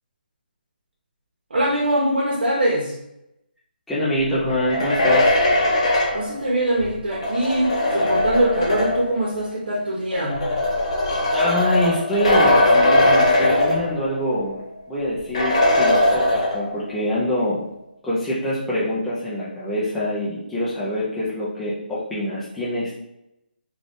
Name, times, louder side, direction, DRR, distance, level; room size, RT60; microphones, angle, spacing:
voice 1, 1.5-2.9 6.1-10.5, right 1 dB, 70° right, -3 dB, 1.0 m, -22 dB
voice 2, 3.9-5.4 11.3-14.6 14.9-17.6 18.0-23.0, left 1 dB, ahead, -10 dB, 0.4 m, -25 dB
sound 1, 4.5-9.2 10.1-14.3 14.6-14.7 15.3-16.9, left 1 dB, 35° left, 0.7 m, -20 dB
3.7 x 2.4 x 3.6 m, 0.85 s
hypercardioid pair, 170°, 6 cm